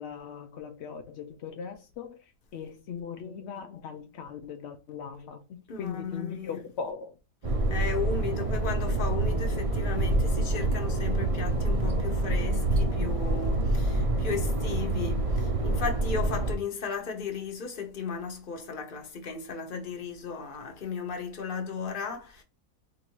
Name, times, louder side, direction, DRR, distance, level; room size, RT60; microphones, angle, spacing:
voice 1, 0.0-7.2, left 6 dB, 75° left, 0.6 m, -39 dB
voice 2, 5.7-6.6 7.7-22.4, left 5 dB, 40° left, 0.9 m, -35 dB
sound 1, 7.4-16.5, right 2 dB, 35° right, 0.5 m, -27 dB
3.7 x 2.6 x 4.5 m
omnidirectional pair, 1.7 m